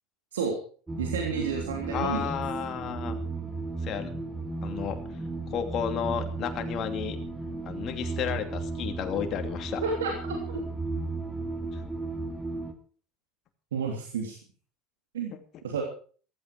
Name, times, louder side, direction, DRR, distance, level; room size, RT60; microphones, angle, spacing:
sound 1, 0.9-12.7, right 3 dB, 15° right, 2.8 m, -34 dB
voice 1, 1.0-2.3 9.8-10.6 13.7-14.4 15.1-15.3 15.6-15.8, right 5 dB, 75° right, 1 dB, 3.1 m, -31 dB
voice 2, 1.9-3.2 3.8-4.1 4.6-5.0 5.5-7.2 7.6-9.8 11.7-11.8, left 9 dB, 45° left, 6 dB, 2.7 m, -32 dB
15.0 x 14.5 x 4.9 m, 0.43 s
hypercardioid pair, 75°, 0 cm